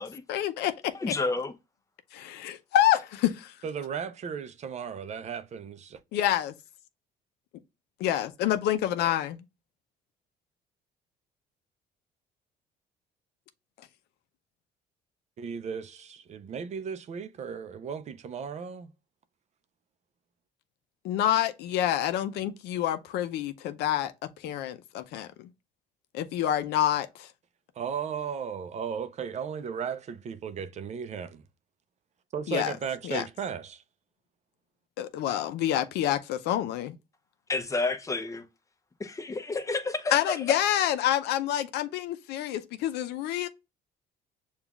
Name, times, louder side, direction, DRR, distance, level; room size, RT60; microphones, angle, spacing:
voice 1, 0.3-0.7 2.2-3.5 6.1-6.5 8.0-9.4 21.0-24.1 24.4-25.5 26.1-27.3 32.5-32.7 33.0-33.2 35.0-37.0 40.1-43.5, left 11 dB, 80° left, 0.5 m, -27 dB
voice 2, 0.9-1.5 37.5-38.4 39.0-40.6, left 3 dB, 20° left, 0.6 m, -30 dB
voice 3, 3.6-6.0 15.4-18.9 27.8-31.4 32.3-33.8, right 7 dB, 45° right, 0.5 m, -35 dB
6.9 x 2.4 x 2.3 m
cardioid pair, 110°, 17 cm